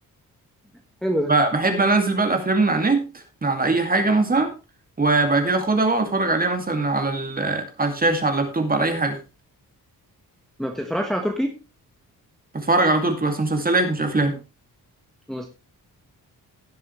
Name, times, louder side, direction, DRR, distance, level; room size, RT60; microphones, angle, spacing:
voice 1, 1.3-3.1 3.4-4.5 5.0-9.2 12.5-14.4, right 3 dB, 25° right, 5 dB, 2.3 m, -21 dB
voice 2, 10.6-11.5 15.3-15.5, equal, ahead, 2 dB, 1.3 m, -25 dB
17.0 x 7.5 x 3.2 m, 0.29 s
wide cardioid pair, 140°, 37 cm